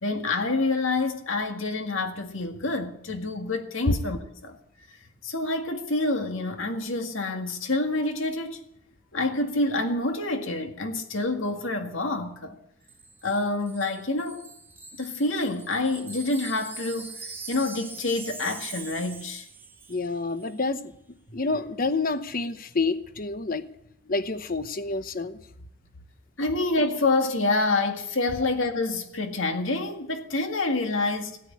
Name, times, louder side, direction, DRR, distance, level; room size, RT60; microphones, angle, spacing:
voice 1, 0.0-4.6 5.2-8.6 9.1-12.6 13.2-14.4 15.0-17.1 17.5-19.5 21.3-21.4 26.4-31.4, left 2 dB, 75° left, 2.0 m, -27 dB
Wind chime, 12.9-20.1 20.4-20.6, right 4 dB, 10° right, 1.1 m, -43 dB
voice 2, 19.9-20.9 21.3-23.7 24.1-25.4, left 3 dB, 45° left, 0.9 m, -28 dB
16.5 x 9.7 x 8.5 m
head